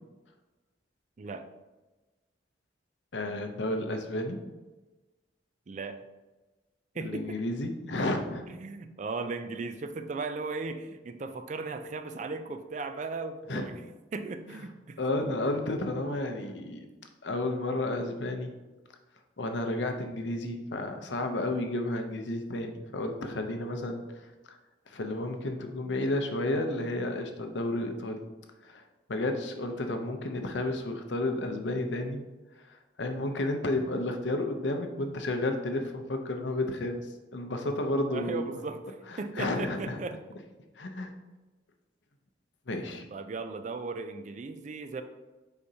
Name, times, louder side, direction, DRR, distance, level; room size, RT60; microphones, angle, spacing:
voice 1, 3.1-4.4 7.0-8.5 13.5-13.6 15.0-16.9 17.2-18.6 19.4-24.0 24.9-28.2 28.6-28.8 29.1-32.2 32.7-37.1 37.3-38.4 39.1-40.0 40.8-41.1 42.7-43.0, left 2 dB, 75° left, 5 dB, 0.7 m, -32 dB
voice 2, 5.7-6.0 7.0-7.4 8.5-13.8 14.1-15.3 38.0-40.2 43.1-45.0, right 3 dB, 40° right, 9 dB, 0.4 m, -37 dB
6.9 x 4.9 x 2.8 m, 1.2 s
head